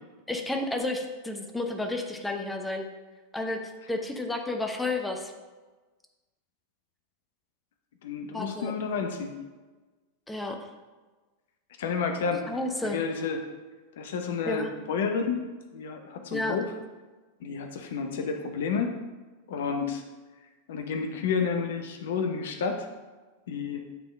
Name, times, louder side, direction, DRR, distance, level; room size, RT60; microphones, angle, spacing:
voice 1, 0.3-2.9 3.3-3.6 3.9-5.3 8.3-8.7 10.3-10.7 12.5-13.0 14.5-14.7 16.3-16.6, left 2 dB, 5° left, 3 dB, 0.7 m, -31 dB
voice 2, 8.0-9.4 11.8-12.6 12.8-13.4 14.0-15.4 15.7-16.7 17.4-18.9 19.5-20.0 20.7-22.9 23.5-23.9, left 5 dB, 60° left, 5 dB, 0.6 m, -30 dB
9.0 x 3.5 x 3.4 m, 1.3 s
figure-of-eight pair, 90°, 0 cm